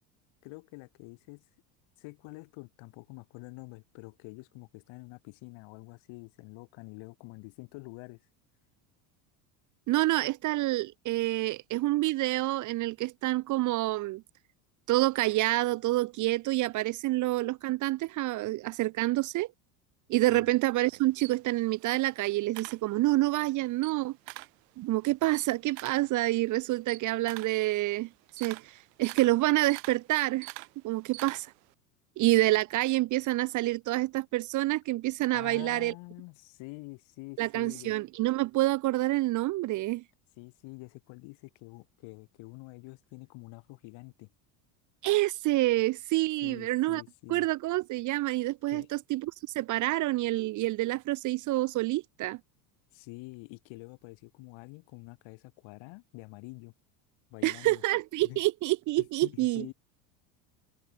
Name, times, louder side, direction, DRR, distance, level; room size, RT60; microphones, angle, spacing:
voice 1, 0.4-1.4 2.0-8.2 20.3-20.5 35.3-37.9 40.4-44.3 46.4-47.5 48.7-48.9 52.9-56.7 57.3-57.8 58.2-58.4 59.0-59.7, left 26 dB, 65° left, 4.6 m, -47 dB
voice 2, 9.9-14.2 14.9-19.5 20.1-24.2 24.8-28.1 28.4-30.5 30.8-31.5 32.2-35.9 37.4-40.0 45.0-47.0 47.3-52.4 57.4-59.7, right 18 dB, 40° right, 0.5 m, -28 dB
Camera, 20.8-23.4 23.7-24.6 25.0-31.7, right 27 dB, 80° right, 3.3 m, -46 dB
supercardioid pair, 105°, 49 cm